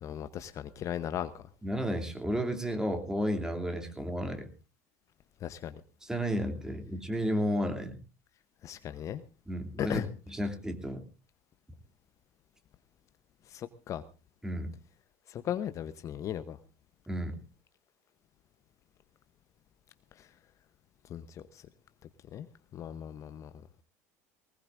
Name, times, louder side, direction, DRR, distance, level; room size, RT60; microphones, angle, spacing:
voice 1, 0.0-1.3 5.4-5.8 8.6-9.2 9.8-10.1 13.5-14.0 15.3-16.6 21.1-21.2 22.3-22.5 22.7-23.5, left 10 dB, 45° left, 12 dB, 0.9 m, -36 dB
voice 2, 1.6-4.5 6.0-8.0 9.5-11.0 14.4-14.7 17.1-17.4, equal, 10° right, 5 dB, 2.8 m, -32 dB
20.5 x 19.5 x 2.6 m, 0.32 s
hypercardioid pair, 80°, 8 cm